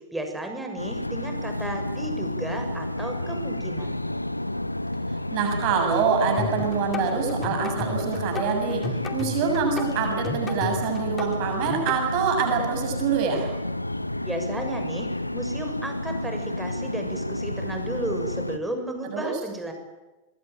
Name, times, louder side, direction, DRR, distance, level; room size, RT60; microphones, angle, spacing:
voice 1, 0.1-4.0 14.2-15.1 15.3-19.7, right 1 dB, 5° right, 4 dB, 6.7 m, -33 dB
sound 1, 0.8-18.6, left 1 dB, 85° left, 0.8 m, -30 dB
voice 2, 5.3-13.5 19.1-19.3, right 6 dB, 45° right, 3 dB, 7.2 m, -25 dB
sound 2, 6.4-12.0, left 5 dB, 20° left, 2.6 m, -34 dB
25.5 x 21.5 x 9.2 m, 1.1 s
figure-of-eight pair, 90°, 0 cm